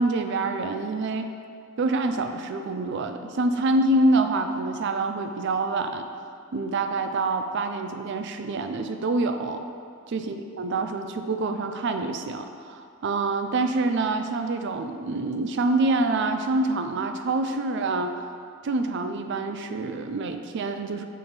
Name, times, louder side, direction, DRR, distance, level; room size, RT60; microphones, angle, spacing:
voice 1, 0.0-1.3 1.8-6.1 6.5-9.6 10.1-18.1 18.6-21.1, right 2 dB, 55° right, 7 dB, 0.4 m, -26 dB
7.6 x 4.3 x 3.3 m, 2.3 s
head